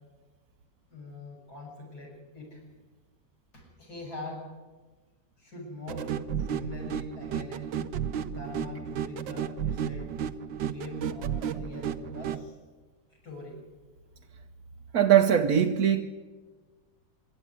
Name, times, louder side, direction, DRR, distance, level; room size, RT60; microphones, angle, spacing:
voice 1, 0.9-2.6 3.5-4.5 5.4-6.1 6.4-7.7 8.2-10.1 10.6-12.6 13.1-13.6, left 3 dB, 60° left, -2 dB, 7.2 m, -43 dB
sound 1, 5.9-12.4, right 8 dB, 90° right, 1.6 m, -33 dB
voice 2, 14.9-16.0, right 9 dB, 60° right, 3 dB, 1.3 m, -21 dB
25.5 x 12.0 x 9.8 m, 1.3 s
omnidirectional pair, 1.9 m